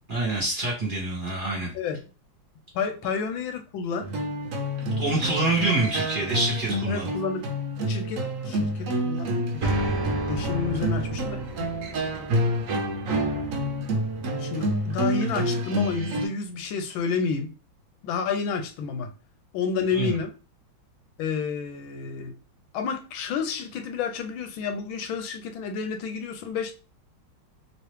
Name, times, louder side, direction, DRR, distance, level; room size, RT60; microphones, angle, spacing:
voice 1, 0.1-1.7 5.0-7.1 19.9-20.2, right 2 dB, 30° right, 1.3 m, -26 dB
voice 2, 2.7-4.1 6.9-7.5 7.9-9.9 10.3-11.4 14.4-17.5 18.0-19.1 19.5-20.3 21.2-22.3 22.7-26.7, left 5 dB, 90° left, 1.4 m, -30 dB
sound 1, 4.0-16.3, right 1 dB, 70° right, 0.7 m, -28 dB
3.1 x 3.0 x 3.1 m
omnidirectional pair, 2.2 m